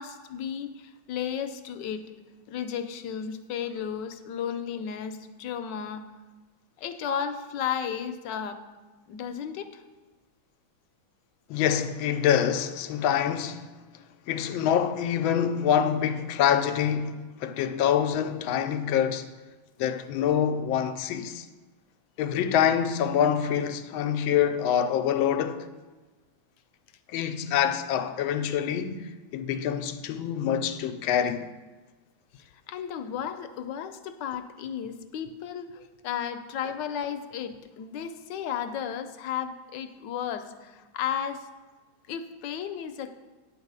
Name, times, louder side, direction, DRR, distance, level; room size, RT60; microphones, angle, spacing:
voice 1, 0.0-2.0 2.5-6.0 6.8-8.6 9.1-9.8 32.3-41.5 42.1-43.2, left 8 dB, 70° left, 1.2 m, -34 dB
voice 2, 11.5-13.7 14.3-19.3 19.8-21.5 22.2-25.7 27.1-31.4, left 9 dB, 90° left, 1.4 m, -26 dB
9.3 x 4.8 x 6.7 m
omnidirectional pair, 2.1 m